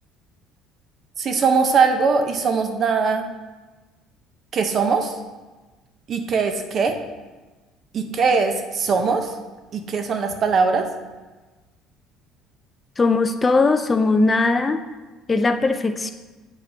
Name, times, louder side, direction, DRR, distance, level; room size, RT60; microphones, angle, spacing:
voice 1, 1.2-3.3 4.5-5.2 6.1-7.0 7.9-9.3 9.7-10.9, right 5 dB, 40° right, 6 dB, 0.7 m, -21 dB
voice 2, 13.0-14.8 15.3-16.1, left 3 dB, 20° left, 7 dB, 0.3 m, -19 dB
8.5 x 4.9 x 2.7 m, 1.2 s
cardioid pair, 130°, 0 cm